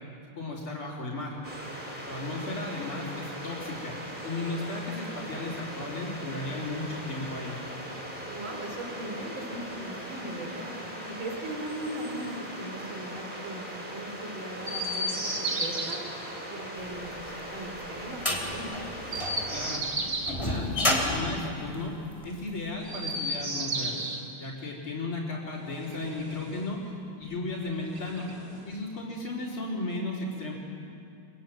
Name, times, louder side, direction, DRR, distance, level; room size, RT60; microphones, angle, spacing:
voice 1, 0.4-1.4 2.1-3.9 4.2-7.6 19.5-19.8 20.3-24.0 24.4-28.2 28.6-30.5, left 2 dB, 75° left, -7 dB, 4.8 m, -35 dB
sound 1, 1.4-19.8, right 1 dB, 20° right, 4.4 m, -40 dB
voice 2, 2.1-2.5 8.2-10.7 11.1-12.3 12.6-16.0 16.5-18.7, right 1 dB, 65° right, 2 dB, 4.2 m, -39 dB
Chirp tweet, 14.6-16.0 19.0-20.4 22.8-24.2 25.6-26.7 27.8-28.7, right 1 dB, 45° right, 2.9 m, -33 dB
sound 2, 17.2-22.5, left 1 dB, 15° left, 3.2 m, -30 dB
27.5 x 23.0 x 9.3 m, 2.6 s
omnidirectional pair, 2.3 m